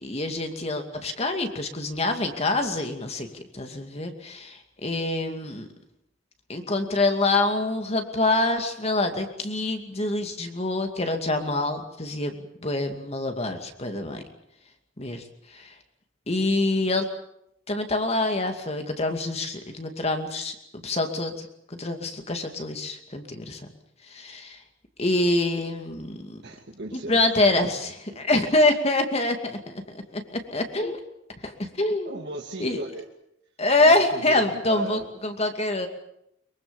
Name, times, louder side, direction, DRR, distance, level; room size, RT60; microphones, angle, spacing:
voice 1, 0.0-5.7 6.5-12.3 12.6-14.2 15.0-15.2 15.5-15.7 16.3-17.1 17.7-20.5 20.8-21.5 21.8-23.6 24.1-24.6 25.0-26.4 26.9-29.8 30.1-31.0 31.4-32.2 32.6-32.8 33.6-35.9, left 2 dB, 35° left, 5 dB, 2.4 m, -25 dB
voice 2, 26.4-27.2 28.1-28.2 32.1-33.1 34.1-35.1, right 2 dB, 60° right, -1 dB, 2.5 m, -35 dB
23.5 x 23.5 x 7.2 m, 0.76 s
head